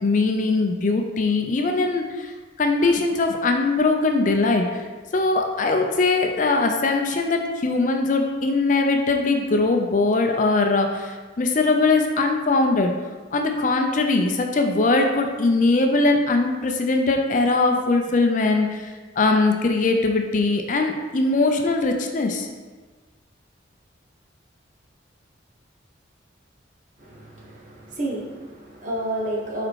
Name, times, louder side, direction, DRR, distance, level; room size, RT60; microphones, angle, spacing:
voice 1, 0.0-2.3 2.6-4.8 5.1-12.9 13.3-22.5, left 3 dB, 40° left, 4 dB, 0.5 m, -21 dB
voice 2, 27.0-29.7, right 1 dB, 40° right, -3 dB, 1.2 m, -30 dB
5.0 x 4.3 x 4.6 m, 1.3 s
head